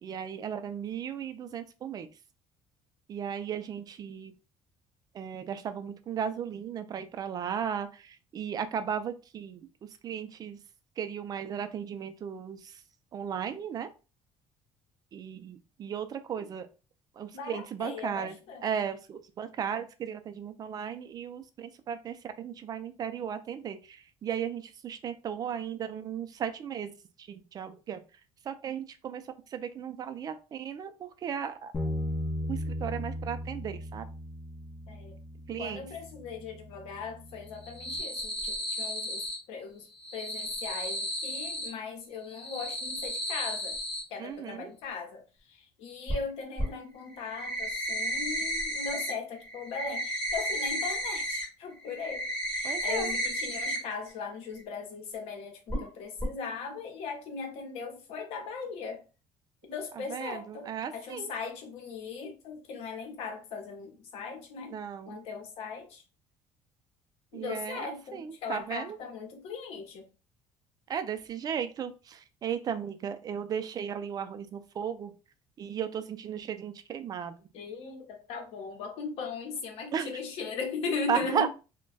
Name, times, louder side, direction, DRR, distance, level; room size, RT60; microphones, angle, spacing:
voice 1, 0.0-2.1 3.1-4.3 5.1-9.7 10.0-10.6 11.0-12.8 13.1-13.9 15.1-16.7 17.2-18.3 18.6-26.9 27.2-28.0 28.4-29.2 29.5-31.7 32.5-34.1 35.5-35.8 44.2-44.7 52.6-53.1 60.1-61.3 64.7-65.2 67.3-69.0 70.9-75.1 75.6-77.3 79.9-80.1 81.1-81.5, right 8 dB, 35° right, 0.4 m, -35 dB
voice 2, 17.3-18.7 34.9-35.2 35.6-43.8 44.1-59.0 59.6-64.8 65.1-66.0 67.3-70.1 77.5-81.5, left 5 dB, 70° left, 0.9 m, -39 dB
Bass guitar, 31.7-38.0, left 1 dB, 25° left, 0.6 m, -37 dB
sound 1, 37.5-39.4 39.9-41.7 42.2-44.0 46.1-46.2 46.6-46.7 47.1-49.1 49.4-51.4 51.8-53.8 54.1-54.2 54.6-54.7 55.7-55.9 56.2-56.3, equal, 5° left, 1.3 m, -33 dB
2.3 x 2.2 x 3.8 m
cardioid pair, 135°, 11 cm